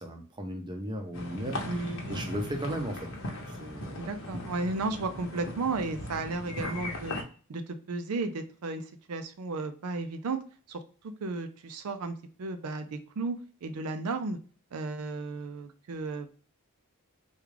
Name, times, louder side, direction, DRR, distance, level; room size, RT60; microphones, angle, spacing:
voice 1, 0.0-1.6 2.1-3.1 3.5-4.0, equal, 20° right, 3 dB, 0.6 m, -35 dB
sound 1, 1.1-7.2, left 1 dB, 60° left, 0.8 m, -38 dB
voice 2, 1.6-2.0 4.0-7.2 7.5-10.4 10.7-10.8 11.2-14.4 14.7-16.3, right 3 dB, 85° right, 8 dB, 0.5 m, -34 dB
3.5 x 2.3 x 3.2 m, 0.39 s
head